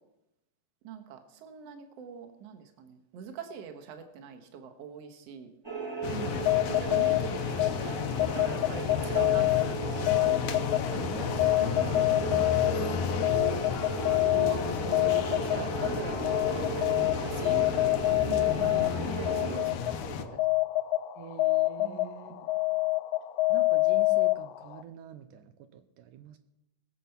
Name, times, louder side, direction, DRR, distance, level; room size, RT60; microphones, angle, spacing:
voice 1, 0.8-5.5 6.8-10.4 10.7-13.6 14.4-17.6 18.7-20.4 21.8-22.5, right 7 dB, 55° right, 5 dB, 2.2 m, -44 dB
sound 1, 5.6-19.6, right 3 dB, 20° right, 0.7 m, -36 dB
sound 2, 6.0-20.2, left 7 dB, 70° left, 2.1 m, -33 dB
voice 2, 6.1-6.5 10.9-11.3 14.3-14.7 18.2-19.2 21.2-22.8 23.5-26.4, right 9 dB, 85° right, 8 dB, 2.3 m, -45 dB
sound 3, 6.3-24.8, left 19 dB, 85° left, 2.4 m, -28 dB
20.5 x 7.4 x 5.7 m, 0.87 s
omnidirectional pair, 3.7 m